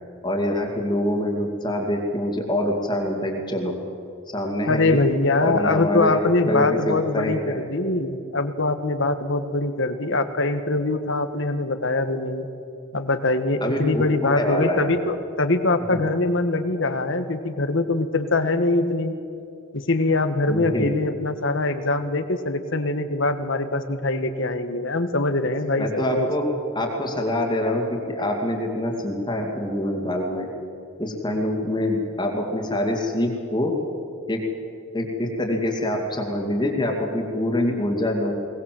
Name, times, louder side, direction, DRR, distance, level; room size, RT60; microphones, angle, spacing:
voice 1, 0.2-3.7 4.3-5.0 5.4-6.2 6.5-7.6 13.6-14.9 15.9-16.0 20.5-20.9 25.8-26.4 26.7-30.5 31.0-33.7 34.3-34.4 34.9-38.3, left 1 dB, 20° left, 1 dB, 2.5 m, -25 dB
voice 2, 4.7-12.5 12.9-19.1 19.7-26.3, left 2 dB, 65° left, 9 dB, 1.6 m, -23 dB
21.5 x 19.5 x 7.7 m, 2.6 s
head